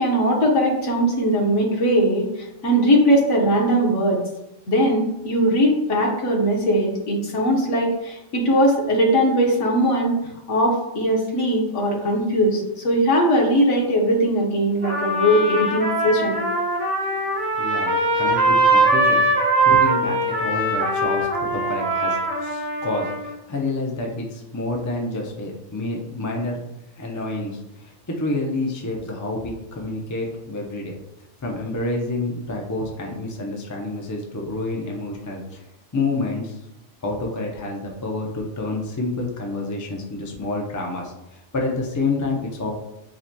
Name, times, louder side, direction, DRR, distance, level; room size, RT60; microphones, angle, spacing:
voice 1, 0.0-4.2 4.7-10.2 10.5-16.4, equal, 85° left, -1 dB, 1.4 m, -20 dB
Trumpet, 14.8-23.3, right 2 dB, 75° right, 1.4 m, -21 dB
voice 2, 17.6-19.3 19.6-26.6 27.0-30.9 31.4-35.6 35.9-36.6 37.0-42.7, left 2 dB, 25° left, 0 dB, 0.4 m, -28 dB
7.5 x 2.8 x 2.2 m, 0.92 s
omnidirectional pair, 1.2 m